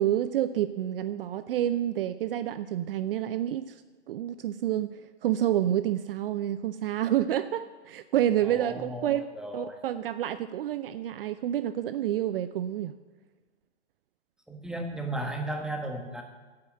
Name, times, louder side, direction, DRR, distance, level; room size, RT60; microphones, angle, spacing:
voice 1, 0.0-3.8 4.1-9.2 9.5-12.9, right 11 dB, 55° right, 13 dB, 0.5 m, -28 dB
voice 2, 8.4-9.8 14.5-16.2, right 1 dB, ahead, 2 dB, 1.4 m, -35 dB
9.6 x 8.7 x 7.5 m, 1.3 s
hypercardioid pair, 120°, 34 cm